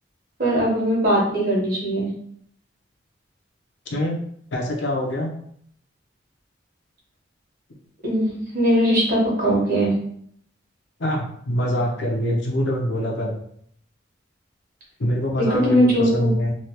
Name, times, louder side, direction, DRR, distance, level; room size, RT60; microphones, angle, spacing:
voice 1, 0.4-2.1 8.0-9.9 15.3-16.3, equal, 45° right, -5 dB, 1.2 m, -20 dB
voice 2, 4.5-5.3 11.0-13.3 15.0-16.6, equal, 65° left, -1 dB, 0.7 m, -24 dB
3.2 x 2.4 x 2.9 m, 0.65 s
head